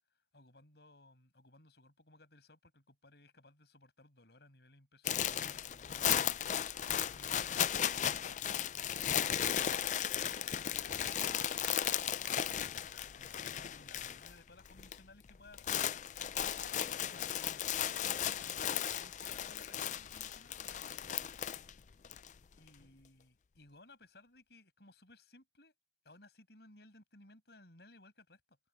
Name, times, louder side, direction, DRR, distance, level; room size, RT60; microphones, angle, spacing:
voice 1, 0.3-6.4 7.1-7.8 10.5-16.4 17.0-21.3 22.5-25.7 26.0-28.6, left 2 dB, 65° left, 6.2 m, -61 dB
sound 1, 5.0-14.3 14.6-15.0 15.3-22.3, left 10 dB, 45° left, 0.4 m, -35 dB
head